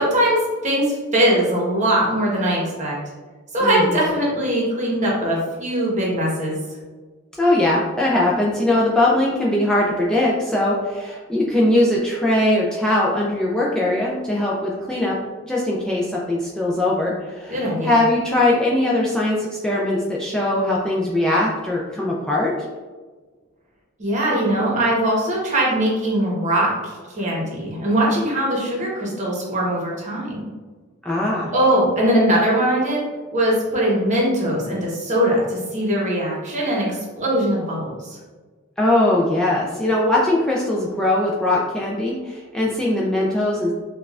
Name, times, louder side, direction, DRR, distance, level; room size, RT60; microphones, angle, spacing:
voice 1, 0.0-3.0 3.5-6.6 17.5-18.0 24.0-30.4 31.5-33.0 33.3-38.2, right 1 dB, 35° right, -4 dB, 1.0 m, -21 dB
voice 2, 3.6-4.0 7.4-15.2 15.5-22.5 31.0-31.5 38.8-43.7, left 1 dB, 5° left, -5 dB, 0.3 m, -20 dB
5.2 x 2.3 x 2.3 m, 1.3 s
head